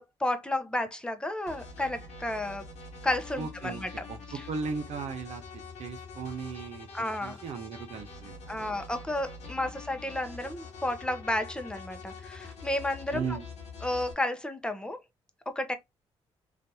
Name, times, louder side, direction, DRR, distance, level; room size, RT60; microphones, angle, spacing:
voice 1, 0.0-2.6 3.0-4.0 6.9-7.4 8.5-13.4 13.8-15.0 15.5-15.8, left 1 dB, 10° left, 0.7 m, -32 dB
sound 1, 1.5-14.1, left 4 dB, 80° left, 1.1 m, -45 dB
voice 2, 3.4-3.8 4.1-5.4 5.8-6.9 7.2-8.7 9.6-9.7 13.1-13.5, right 5 dB, 75° right, 1.0 m, -37 dB
3.3 x 2.5 x 2.7 m
cardioid pair, 75°, 11 cm